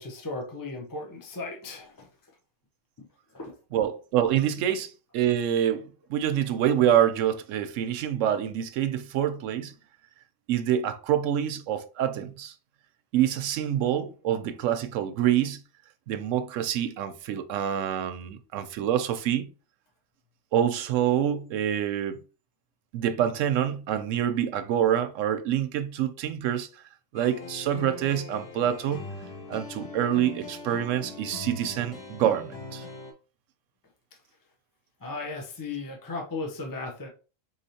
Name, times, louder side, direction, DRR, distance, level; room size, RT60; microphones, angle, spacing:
voice 1, 0.0-2.1 3.0-3.1 3.3-3.5 35.0-37.1, left 3 dB, 20° left, 0.7 m, -36 dB
voice 2, 3.7-9.7 10.5-12.5 13.1-15.6 16.1-19.5 20.5-22.2 22.9-26.7 27.1-29.0 29.5-32.8, right 10 dB, 80° right, 0.9 m, -26 dB
sound 1, 27.1-33.1, left 3 dB, 75° left, 1.4 m, -41 dB
4.2 x 3.2 x 2.8 m
omnidirectional pair, 1.3 m